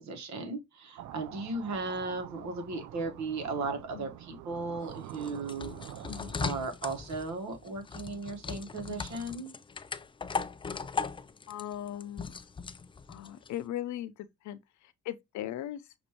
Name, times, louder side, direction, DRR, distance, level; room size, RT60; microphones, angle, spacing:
voice 1, 0.1-5.8 6.4-9.5, right 3 dB, 65° right, 1.3 m, -36 dB
sound 1, 1.0-6.5, right 12 dB, 85° right, 0.5 m, -46 dB
sound 2, 4.8-13.6, left 5 dB, 20° left, 0.3 m, -38 dB
voice 2, 11.5-12.3 13.1-15.9, left 12 dB, 70° left, 0.6 m, -39 dB
6.2 x 2.6 x 2.8 m
cardioid pair, 90°, 30 cm